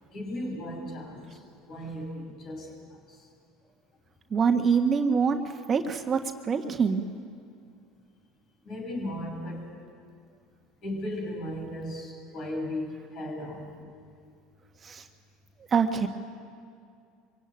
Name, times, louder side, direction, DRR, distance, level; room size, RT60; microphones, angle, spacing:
voice 1, 0.1-3.3 8.6-9.7 10.8-13.8, left 1 dB, 50° left, 2 dB, 6.8 m, -36 dB
voice 2, 4.3-5.4 5.7-7.0 14.8-15.0 15.7-16.1, right 6 dB, 35° right, 5 dB, 1.5 m, -25 dB
24.0 x 17.0 x 9.2 m, 2.4 s
hypercardioid pair, 80°, 0 cm